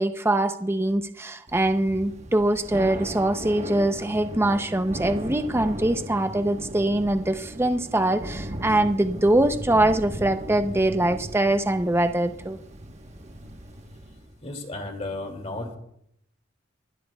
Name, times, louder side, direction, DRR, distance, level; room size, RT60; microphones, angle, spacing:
voice 1, 0.0-12.6, right 1 dB, 10° right, 8 dB, 0.6 m, -23 dB
Thunder / Rain, 1.5-14.4, right 1 dB, 35° right, 1.1 m, -37 dB
voice 2, 14.4-15.8, left 2 dB, 35° left, 4 dB, 2.3 m, -33 dB
27.0 x 12.5 x 2.3 m, 0.74 s
head